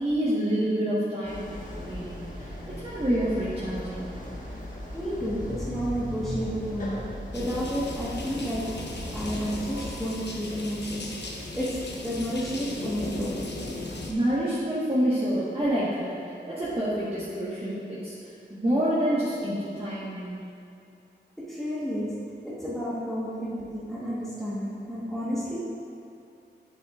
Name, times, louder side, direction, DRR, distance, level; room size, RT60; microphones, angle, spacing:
voice 1, 0.0-4.1 14.1-18.2 18.5-20.4, equal, 30° right, -10 dB, 1.4 m, -28 dB
sound 1, 1.2-10.0, equal, 45° left, 1.5 m, -38 dB
voice 2, 4.9-8.8 9.1-13.5 21.4-25.6, equal, ahead, -9 dB, 1.4 m, -31 dB
sound 2, 7.3-14.1, left 2 dB, 65° left, 0.8 m, -37 dB
7.5 x 7.4 x 2.5 m, 2.6 s
cardioid pair, 50°, 19 cm